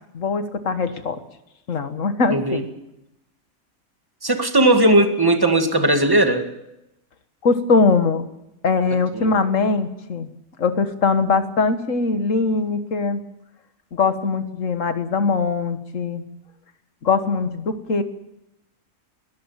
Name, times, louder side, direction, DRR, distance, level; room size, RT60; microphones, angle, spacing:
voice 1, 0.1-1.2 1.7-2.7 7.4-8.3 8.6-10.3 10.6-13.2 13.9-16.2 17.0-18.0, left 4 dB, 65° left, 9 dB, 1.8 m, -21 dB
voice 2, 2.3-2.6 4.2-6.5 9.1-9.4, right 1 dB, 15° right, 6 dB, 1.9 m, -17 dB
21.0 x 14.0 x 9.0 m, 0.88 s
omnidirectional pair, 1.5 m